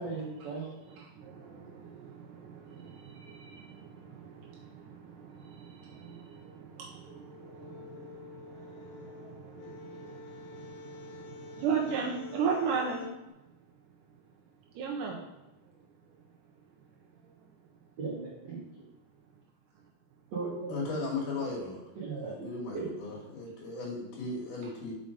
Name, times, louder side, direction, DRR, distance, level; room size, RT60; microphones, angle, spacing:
voice 1, 0.0-0.7 18.0-18.8 20.3-20.7 22.0-22.5 22.7-22.9, right 4 dB, 60° right, -6 dB, 1.9 m, -37 dB
voice 2, 0.9-13.1 14.8-15.2 17.2-17.3 21.4-21.5, right 6 dB, 80° right, -1 dB, 1.9 m, -37 dB
sound 1, 7.0-13.2, left 5 dB, 75° left, 2.1 m, -48 dB
voice 3, 20.7-21.8 22.1-24.9, left 3 dB, 60° left, -2 dB, 2.9 m, -36 dB
5.8 x 5.3 x 5.0 m, 0.96 s
omnidirectional pair, 4.6 m